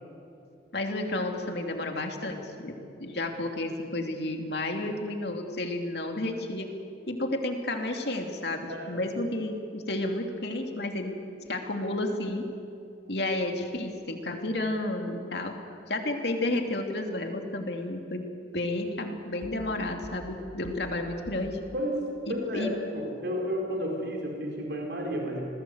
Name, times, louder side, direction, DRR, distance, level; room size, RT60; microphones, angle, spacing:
voice 1, 0.7-2.8 3.0-6.7 7.1-11.1 11.5-12.4 13.1-15.5 15.9-18.3 18.5-21.6 22.3-22.7, left 2 dB, 60° left, 3 dB, 2.8 m, -31 dB
voice 2, 8.7-9.0 19.5-19.6 21.7-25.4, equal, 65° right, 0 dB, 4.2 m, -32 dB
sound 1, 19.4-19.8 20.0-21.0 21.3-21.6, equal, 80° right, 6.4 m, -46 dB
27.5 x 20.0 x 8.0 m, 2.7 s
head